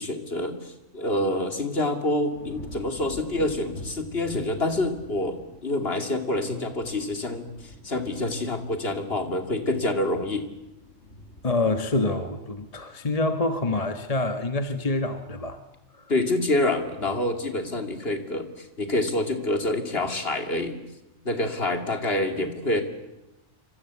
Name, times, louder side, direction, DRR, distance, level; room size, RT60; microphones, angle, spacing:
voice 1, 0.0-7.5 7.8-10.5 16.1-20.8 21.2-22.8, left 1 dB, 50° left, 6 dB, 2.8 m, -27 dB
sound 1, 2.3-13.6 14.0-14.5, left 2 dB, 65° left, 3.3 m, -47 dB
voice 2, 11.4-15.6 15.9-16.1, left 2 dB, 30° left, 7 dB, 1.4 m, -26 dB
26.5 x 25.5 x 8.3 m, 0.95 s
omnidirectional pair, 1.3 m